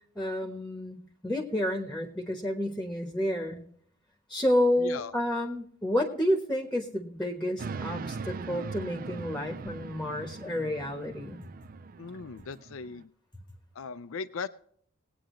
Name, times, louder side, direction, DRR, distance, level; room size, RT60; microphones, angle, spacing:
voice 1, 0.1-1.0 1.2-3.6 4.3-11.4, left 1 dB, 5° left, 4 dB, 1.2 m, -30 dB
voice 2, 4.8-5.1 12.0-13.1 13.8-14.5, left 5 dB, 70° left, 13 dB, 0.5 m, -38 dB
sound 1, 7.6-13.0, right 4 dB, 40° right, 0.4 m, -40 dB
21.0 x 8.8 x 3.1 m, 0.62 s
head